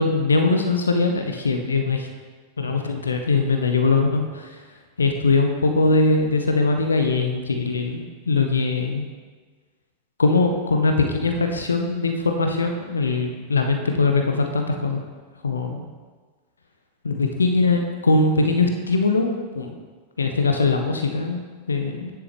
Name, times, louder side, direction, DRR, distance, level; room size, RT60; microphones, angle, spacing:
voice 1, 0.0-2.1 2.6-4.5 5.0-9.1 10.2-15.0 15.4-15.8 17.0-19.7 20.2-21.4 21.7-22.1, left 3 dB, 75° left, 4 dB, 0.5 m, -21 dB
10.0 x 3.5 x 3.2 m, 1.4 s
figure-of-eight pair, 90°, 0 cm